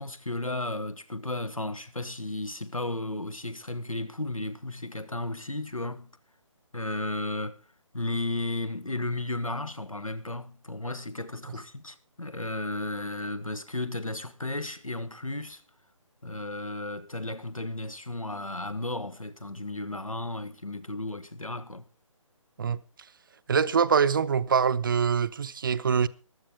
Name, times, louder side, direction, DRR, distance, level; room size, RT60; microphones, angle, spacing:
voice 1, 0.0-6.1 6.7-7.6 7.9-15.6 16.2-21.8, left 2 dB, 90° left, 1.5 m, -34 dB
voice 2, 23.5-26.1, right 6 dB, 40° right, 0.6 m, -24 dB
15.0 x 12.5 x 4.6 m
figure-of-eight pair, 145°, 17 cm